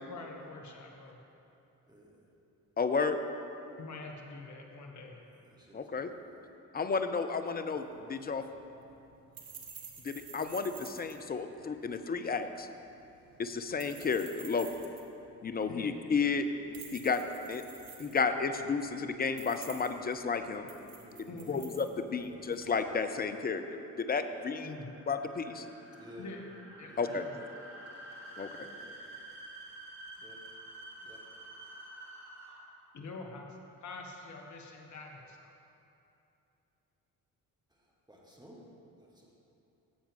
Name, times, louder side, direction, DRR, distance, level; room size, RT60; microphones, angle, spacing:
voice 1, 0.1-1.2 3.8-5.2 15.7-16.0 21.3-21.7 24.6-25.0 26.2-26.4 26.8-27.3 32.9-33.5 33.8-35.5, left 3 dB, 40° left, 1 dB, 1.2 m, -45 dB
voice 2, 1.9-2.2 5.5-6.3 21.0-21.7 22.0-22.4 25.9-26.3 26.9-27.1 28.6-28.7 30.2-30.4 31.0-31.2 38.1-38.6 39.2-39.3, left 1 dB, 10° right, -3 dB, 2.0 m, -53 dB
voice 3, 2.8-3.2 5.7-6.1 6.7-8.4 10.0-12.7 13.4-14.9 15.4-16.4 16.9-17.2 17.5-17.6 18.0-20.7 21.5-24.7 25.1-25.6 27.0-27.3 28.4-28.5, left 5 dB, 20° left, 8 dB, 0.5 m, -32 dB
sound 1, 7.7-22.8, right 6 dB, 50° right, 1.1 m, -52 dB
sound 2, 22.2-32.9, right 1 dB, 65° right, 1.4 m, -50 dB
10.0 x 7.1 x 3.6 m, 2.8 s
figure-of-eight pair, 40°, 46 cm